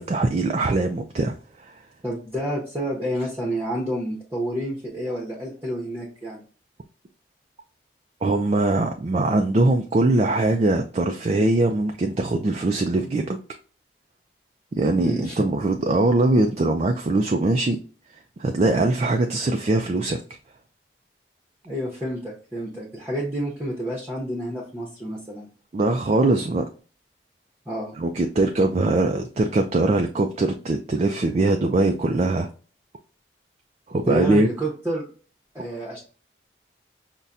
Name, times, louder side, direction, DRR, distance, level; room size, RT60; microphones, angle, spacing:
voice 1, 0.0-1.7 8.2-13.4 14.7-17.8 18.4-20.2 25.7-26.6 28.0-32.5 33.9-34.5, right 2 dB, 35° right, 4 dB, 0.3 m, -22 dB
voice 2, 2.0-6.4 15.0-15.4 21.6-25.5 27.7-27.9 34.1-35.0 35.5-36.0, right 1 dB, 10° right, -3 dB, 0.8 m, -29 dB
5.5 x 2.2 x 2.4 m, 0.38 s
head